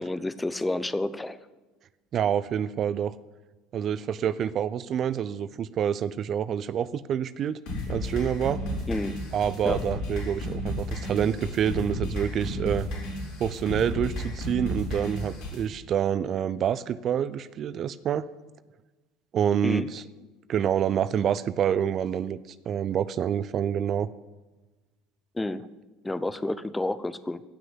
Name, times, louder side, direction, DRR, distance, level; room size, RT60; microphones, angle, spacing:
voice 1, 0.0-1.4 8.9-9.2 9.6-9.8 19.6-19.9 25.3-25.6 26.0-27.4, left 2 dB, 10° left, 14 dB, 0.9 m, -30 dB
voice 2, 2.1-3.2 3.7-7.6 7.9-8.6 9.3-12.9 13.4-18.3 19.3-20.0 20.5-22.4 22.7-24.1, right 9 dB, 45° right, 16 dB, 0.5 m, -27 dB
sound 1, 7.7-15.6, left 1 dB, 65° left, 6.0 m, -33 dB
16.5 x 6.2 x 9.7 m, 1.2 s
hypercardioid pair, 70°, 0 cm